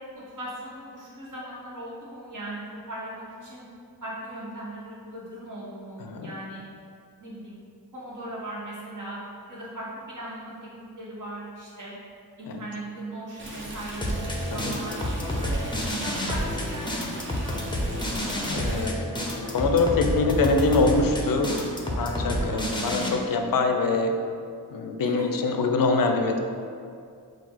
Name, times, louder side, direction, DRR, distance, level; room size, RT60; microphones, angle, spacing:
voice 1, 0.1-3.6 4.0-6.6 7.2-7.6 7.9-9.2 9.5-11.9 12.4-15.1 15.4-15.6 16.0-18.1 22.4-22.6 25.0-25.2, right 1 dB, 50° right, -7 dB, 1.4 m, -38 dB
Stream, 13.4-18.9, right 1 dB, 30° right, 0.7 m, -40 dB
sound 1, 14.0-23.1, equal, 10° left, 0.7 m, -29 dB
voice 2, 18.5-19.1 19.5-21.5 22.0-24.2 24.7-26.4, left 3 dB, 60° left, 5 dB, 0.5 m, -24 dB
4.0 x 2.3 x 4.5 m, 2.4 s
cardioid pair, 55°, 39 cm